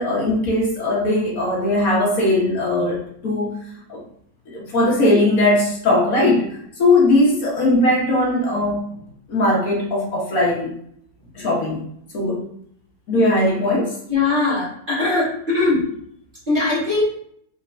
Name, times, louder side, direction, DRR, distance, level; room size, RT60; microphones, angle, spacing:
voice 1, 0.0-3.6 3.9-4.0 4.5-6.5 6.8-8.9 9.3-10.7 11.3-11.8 12.1-12.4 13.1-13.9, left 1 dB, 60° left, -3 dB, 1.5 m, -19 dB
voice 2, 14.1-15.8 16.5-17.0, left 3 dB, 30° right, -8 dB, 1.8 m, -20 dB
4.4 x 3.2 x 2.5 m, 0.68 s
omnidirectional pair, 1.8 m